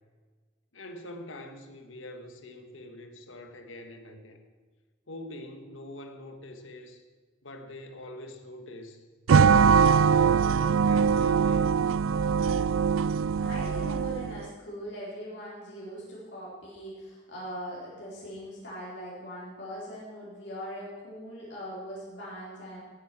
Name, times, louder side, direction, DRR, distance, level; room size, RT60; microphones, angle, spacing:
voice 1, 0.7-4.4 5.1-7.0 7.4-9.0 9.4-11.7, left 1 dB, 75° left, 6 dB, 1.5 m, -44 dB
sound 1, 9.3-14.4, right 6 dB, 90° right, 0.4 m, -22 dB
voice 2, 13.4-22.8, equal, 60° left, -6 dB, 4.3 m, -41 dB
17.5 x 9.2 x 6.1 m, 1.4 s
head